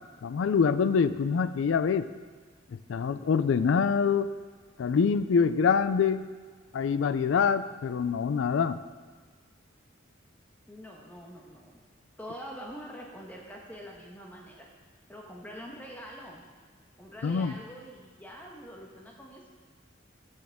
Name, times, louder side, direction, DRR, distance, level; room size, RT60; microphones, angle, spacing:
voice 1, 0.2-2.1 2.9-4.3 4.8-6.3 6.7-8.8 17.2-17.6, left 6 dB, 80° left, 13 dB, 0.4 m, -25 dB
voice 2, 10.7-11.8 12.2-14.7 15.1-16.5 17.0-19.5, equal, 10° left, -1 dB, 1.1 m, -45 dB
13.5 x 6.4 x 3.5 m, 1.5 s
head